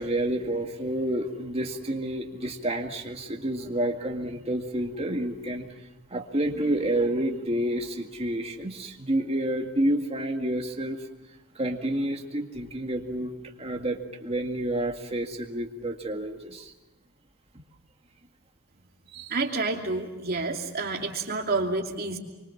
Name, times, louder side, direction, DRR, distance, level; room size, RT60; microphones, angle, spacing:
voice 1, 0.0-5.7 6.1-11.0 11.6-13.3 13.6-16.7, right 1 dB, 30° right, 2 dB, 2.0 m, -29 dB
voice 2, 19.1-22.2, right 3 dB, 45° right, 1 dB, 2.9 m, -29 dB
26.0 x 24.5 x 7.2 m, 1.0 s
head